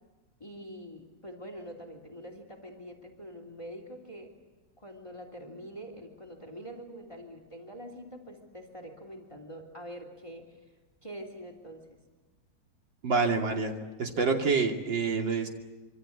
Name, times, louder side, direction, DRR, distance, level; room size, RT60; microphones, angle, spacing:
voice 1, 0.4-4.3 4.8-10.6 11.0-12.0, equal, 15° left, 4 dB, 3.0 m, -45 dB
voice 2, 13.0-15.5, right 4 dB, 65° right, 2 dB, 3.4 m, -27 dB
26.0 x 25.0 x 8.6 m, 1.2 s
omnidirectional pair, 2.2 m